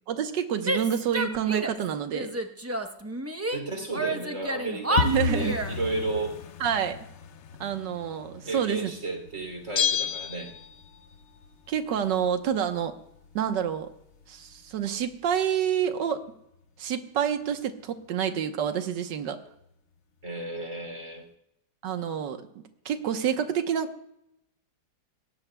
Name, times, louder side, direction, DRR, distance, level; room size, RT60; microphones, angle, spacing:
voice 1, 0.1-2.3 5.0-5.6 6.6-7.0 7.6-8.9 11.7-13.0 13.4-13.9 14.3-16.2 16.8-19.4 21.8-22.4 22.9-24.0, right 8 dB, 70° right, 7 dB, 1.7 m, -28 dB
Female speech woman speaking / Yell, 0.6-1.8 2.1-3.6 3.9-5.8, right 1 dB, 20° right, 0.4 m, -30 dB
voice 2, 3.5-6.3 8.4-10.5 20.2-21.2, right 2 dB, 40° right, 3 dB, 3.5 m, -33 dB
sound 1, 5.0-15.7 15.9-16.6 16.9-17.2 17.5-17.8 18.1-18.2 18.7-19.3 19.6-19.7 20.2-20.3, left 5 dB, 70° left, 0.6 m, -37 dB
Bell, 9.8-11.2 11.4-11.5, left 9 dB, 35° left, 1.3 m, -29 dB
20.5 x 18.0 x 2.3 m, 0.80 s
omnidirectional pair, 2.1 m